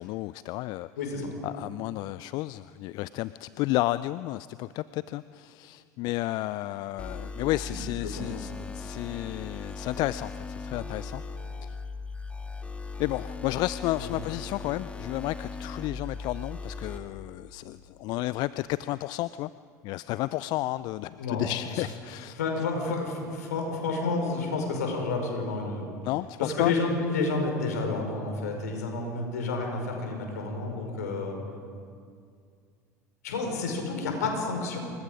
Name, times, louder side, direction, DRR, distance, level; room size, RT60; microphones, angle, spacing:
voice 1, 0.0-0.9 1.4-11.2 11.6-11.8 13.0-19.5 19.8-22.4 26.0-26.7, left 17 dB, 50° left, 16 dB, 0.4 m, -32 dB
voice 2, 1.0-1.3 7.7-7.8 8.2-8.4 13.9-14.1 21.2-21.5 22.4-25.9 26.4-31.4 33.2-34.9, left 3 dB, 70° left, 2 dB, 4.9 m, -30 dB
sound 1, 7.0-17.0, left 4 dB, 15° left, 2.4 m, -38 dB
28.0 x 22.0 x 5.1 m, 2.3 s
figure-of-eight pair, 70°, 9 cm